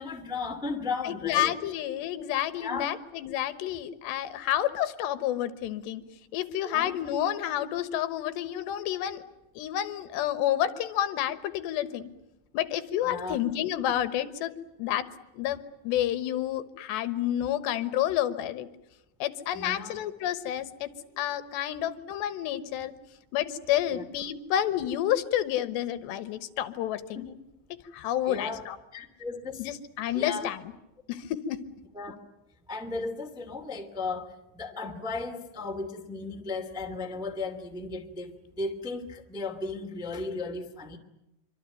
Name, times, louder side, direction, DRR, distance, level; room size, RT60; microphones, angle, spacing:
voice 1, 0.0-1.5 2.6-3.0 6.6-7.0 13.0-13.4 19.5-20.0 23.9-24.0 27.1-27.3 28.2-29.7 30.1-30.5 31.9-32.1 32.7-41.0, left 3 dB, ahead, 4 dB, 1.2 m, -35 dB
voice 2, 1.0-6.0 6.3-9.2 9.6-12.1 12.5-15.1 15.3-15.6 15.8-18.7 19.2-20.9 21.2-22.9 23.3-27.4 27.9-28.8 29.6-30.7 31.1-31.6, left 11 dB, 75° left, 13 dB, 3.3 m, -29 dB
26.0 x 25.0 x 9.1 m, 0.87 s
omnidirectional pair, 5.1 m